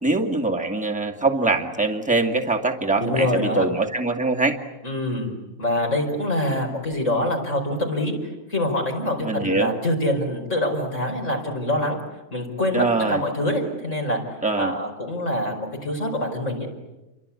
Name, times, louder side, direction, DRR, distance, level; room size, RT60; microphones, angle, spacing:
voice 1, 0.0-4.6 9.2-9.7 12.7-13.2 14.4-14.8, right 3 dB, 5° right, 1 dB, 2.1 m, -23 dB
voice 2, 3.0-3.6 4.8-5.3 5.6-8.2 8.5-12.0 12.3-14.2 14.6-16.7, left 1 dB, 60° left, 0 dB, 5.3 m, -25 dB
29.5 x 24.0 x 8.5 m, 1.0 s
omnidirectional pair, 1.5 m